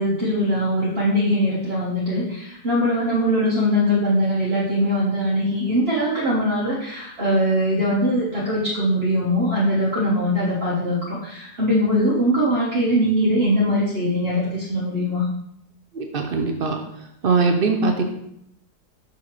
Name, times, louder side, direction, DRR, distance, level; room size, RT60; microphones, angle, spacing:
voice 1, 0.0-15.2, equal, 40° right, -7 dB, 1.3 m, -21 dB
voice 2, 15.9-16.8 17.2-18.0, right 4 dB, 70° right, 4 dB, 0.5 m, -21 dB
6.2 x 5.8 x 3.1 m, 0.77 s
omnidirectional pair, 1.8 m